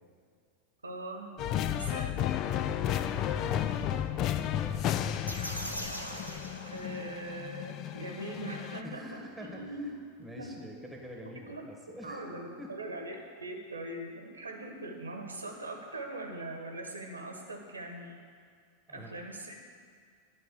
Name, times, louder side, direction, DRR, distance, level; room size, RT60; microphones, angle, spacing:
voice 1, 0.8-1.3 1.8-2.5 6.7-9.9 10.4-10.6 11.5-11.6 12.0-18.2 18.9-19.6, right 2 dB, 75° right, 3 dB, 1.1 m, -41 dB
sound 1, 1.4-8.8, left 10 dB, 35° left, 0.4 m, -33 dB
voice 2, 1.6-3.8 4.3-5.0 8.8-9.9 10.2-12.3 12.6-12.7 18.9-19.2, equal, ahead, 0 dB, 1.8 m, -47 dB
sound 2, 5.3-7.4, equal, 85° left, 1.0 m, -40 dB
9.9 x 5.3 x 8.1 m, 2.2 s
figure-of-eight pair, 90°, 0 cm